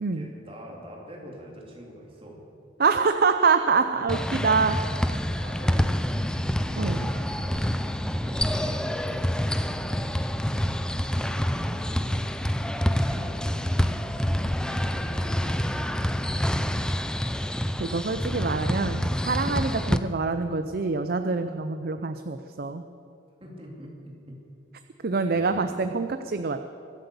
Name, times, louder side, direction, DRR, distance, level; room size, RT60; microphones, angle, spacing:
voice 1, 0.1-2.5 5.0-7.6 8.2-10.5 11.0-12.4 12.8-16.9 23.4-24.5 25.2-25.8, equal, 30° right, -1 dB, 2.8 m, -44 dB
voice 2, 2.8-4.8 6.8-7.0 17.8-22.8 25.0-26.6, right 4 dB, 50° right, 9 dB, 0.5 m, -25 dB
sound 1, 4.1-20.0, equal, 5° left, 0.4 m, -27 dB
23.0 x 7.9 x 6.9 m, 2.6 s
head